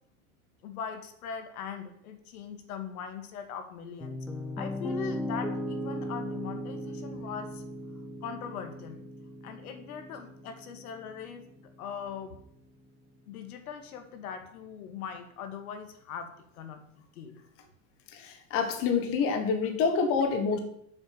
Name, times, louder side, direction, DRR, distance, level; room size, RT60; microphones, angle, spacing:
voice 1, 0.6-4.2 4.6-7.6 8.2-9.0 9.4-11.5 11.8-12.4 13.3-16.3 16.5-17.4, left 7 dB, 85° left, 7 dB, 2.0 m, -40 dB
Piano, 4.0-12.1, equal, ahead, 0.4 m, -38 dB
voice 2, 18.1-20.6, left 5 dB, 30° left, 5 dB, 1.4 m, -27 dB
9.2 x 7.2 x 6.9 m, 0.73 s
supercardioid pair, 165°, 43 cm